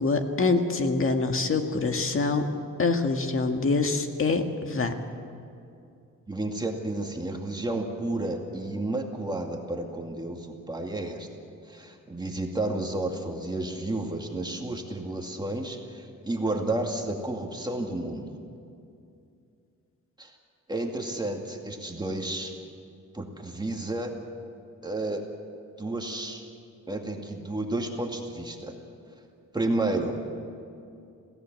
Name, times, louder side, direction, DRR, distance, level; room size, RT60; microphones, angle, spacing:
voice 1, 0.0-2.5 2.8-4.9, left 3 dB, 45° left, 5 dB, 1.9 m, -25 dB
voice 2, 6.3-11.3 11.7-18.3 20.2-20.3 20.7-22.5 23.1-24.1 24.8-25.2 25.8-26.4 26.9-28.7 29.5-30.1, right 2 dB, 15° right, 2 dB, 2.4 m, -31 dB
27.5 x 17.0 x 7.7 m, 2.5 s
cardioid pair, 120°, 31 cm